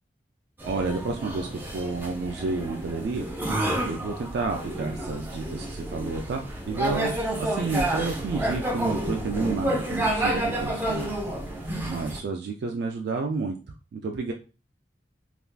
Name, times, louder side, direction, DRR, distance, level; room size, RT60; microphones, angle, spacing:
sound 1, 0.6-12.2, right 1 dB, 10° right, 0.6 m, -30 dB
voice 1, 0.6-11.1 11.5-13.6 13.9-14.3, right 3 dB, 65° right, 2 dB, 0.3 m, -31 dB
3.3 x 2.4 x 2.2 m, 0.34 s
head